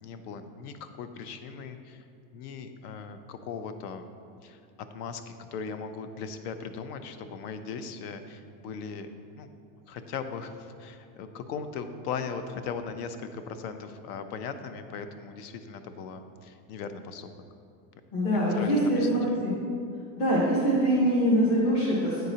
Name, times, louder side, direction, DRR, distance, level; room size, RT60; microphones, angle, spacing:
voice 1, 0.0-2.0 2.3-4.0 4.4-9.1 9.4-9.5 9.9-17.3 18.6-18.7 19.0-19.4, left 5 dB, 75° left, 9 dB, 0.6 m, -38 dB
voice 2, 18.1-19.5 20.2-22.3, equal, 40° left, -7 dB, 1.2 m, -24 dB
9.1 x 3.9 x 2.8 m, 2.4 s
supercardioid pair, 165°, 46 cm